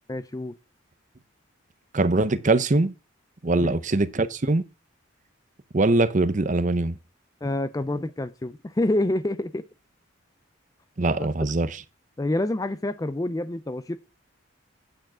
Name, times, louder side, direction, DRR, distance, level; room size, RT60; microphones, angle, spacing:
voice 1, 0.1-0.5 3.6-3.8 7.4-9.6 11.2-11.3 12.2-14.0, left 1 dB, 15° left, 0.4 m, -27 dB
voice 2, 1.9-2.9 3.4-4.6 5.7-7.0 11.0-11.8, right 2 dB, 35° right, 0.7 m, -22 dB
9.0 x 6.3 x 4.8 m
head